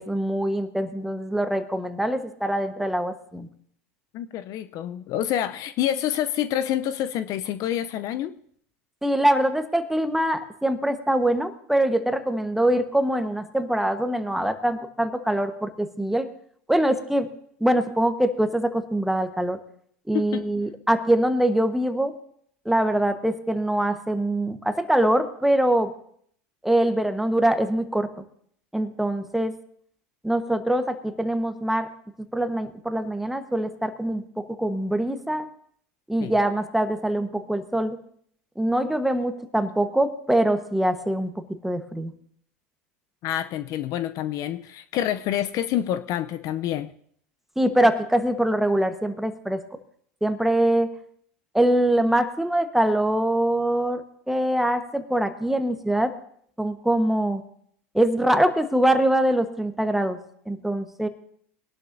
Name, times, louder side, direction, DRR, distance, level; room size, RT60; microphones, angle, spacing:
voice 1, 0.0-3.5 9.0-16.3 16.7-17.3 17.6-19.6 20.1-22.1 22.6-25.9 26.6-28.1 28.7-29.5 30.2-31.9 32.3-34.2 34.6-35.5 36.1-38.0 38.6-41.3 41.6-42.1 47.6-49.6 50.2-50.9 51.5-54.0 54.3-56.1 56.6-57.4 57.9-60.2 60.5-61.1, right 1 dB, 5° right, 8 dB, 1.2 m, -23 dB
voice 2, 4.1-8.4 20.1-20.4 36.2-36.4 43.2-46.9, left 11 dB, 50° left, 12 dB, 0.5 m, -27 dB
21.0 x 11.5 x 2.6 m, 0.64 s
hypercardioid pair, 95°, 8 cm